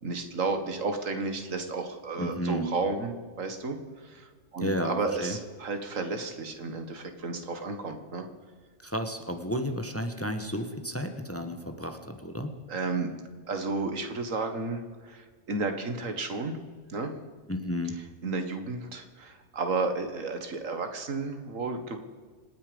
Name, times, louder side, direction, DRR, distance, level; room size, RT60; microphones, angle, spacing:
voice 1, 0.0-3.1 3.4-3.8 4.0-8.3 12.7-13.1 13.5-16.6 16.9-17.1 18.2-22.0, right 3 dB, 85° right, 7 dB, 2.0 m, -32 dB
voice 2, 2.2-2.7 4.6-5.4 8.8-12.5 17.5-18.0, equal, 10° left, 7 dB, 1.2 m, -32 dB
26.5 x 9.8 x 5.2 m, 1.6 s
omnidirectional pair, 1.3 m